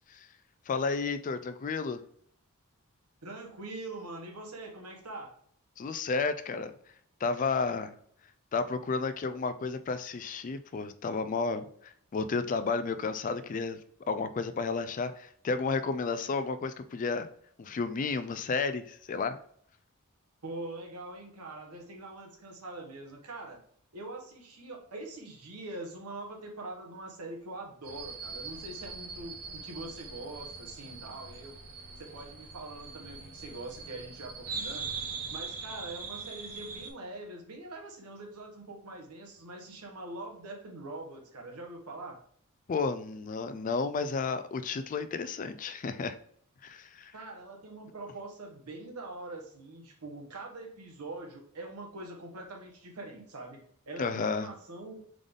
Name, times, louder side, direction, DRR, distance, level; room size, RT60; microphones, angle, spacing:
voice 1, 0.7-2.0 5.8-6.7 7.2-7.9 8.5-13.8 14.1-17.3 17.6-19.4 42.7-46.2 46.6-47.1 54.0-54.5, left 4 dB, 35° left, 11 dB, 0.3 m, -32 dB
voice 2, 3.2-5.3 20.4-23.6 23.9-31.6 32.0-34.9 35.3-42.2 47.1-55.1, right 2 dB, 90° right, 1 dB, 1.2 m, -43 dB
sound 1, 27.8-36.9, right 4 dB, 65° right, 0.9 m, -41 dB
3.8 x 3.5 x 3.6 m, 0.63 s
head